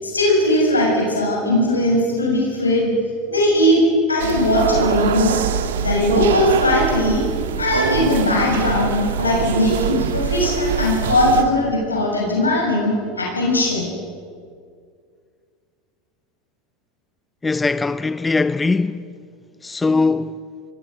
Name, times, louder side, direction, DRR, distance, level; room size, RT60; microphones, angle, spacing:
voice 1, 0.0-2.9 3.3-3.8 4.1-5.4 5.8-7.3 7.6-13.9, left 1 dB, 90° left, 6.7 m, -19 dB
sound 1, 4.2-11.4, right 8 dB, 70° right, 1.7 m, -23 dB
voice 2, 17.4-19.0 19.6-20.4, left 3 dB, 15° left, 0.8 m, -20 dB
29.0 x 21.5 x 6.6 m
figure-of-eight pair, 80°, 0 cm